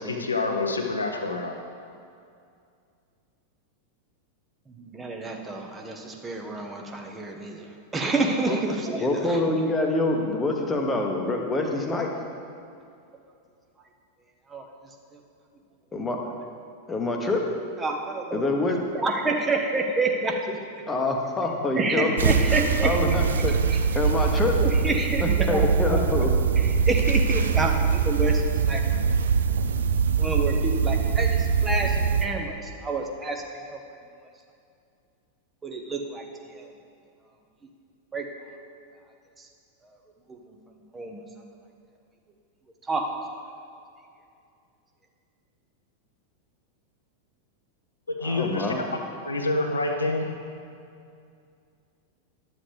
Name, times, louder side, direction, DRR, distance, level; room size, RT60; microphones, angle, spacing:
voice 1, 0.0-1.5 48.1-48.7 49.2-50.3, left 2 dB, 75° left, 3 dB, 0.8 m, -27 dB
voice 2, 4.7-9.5 14.5-15.2 17.8-18.4 18.9-20.9 21.7-23.0 23.5-23.8 24.6-26.1 26.6-29.0 30.2-33.8 35.6-36.7 38.1-38.3 39.4-39.5 39.8-40.0 40.3-41.5 42.8-43.0, right 2 dB, 15° right, 1 dB, 0.9 m, -29 dB
voice 3, 9.0-12.1 15.9-16.2 16.9-17.6 18.3-18.8 20.9-22.3 22.8-23.5 23.9-24.7 25.5-26.3 48.2-48.8, left 2 dB, 15° left, 2 dB, 1.1 m, -26 dB
sound 1, 22.2-32.3, right 6 dB, 65° right, 0.4 m, -23 dB
11.5 x 7.4 x 3.4 m, 2.4 s
figure-of-eight pair, 90°, 0 cm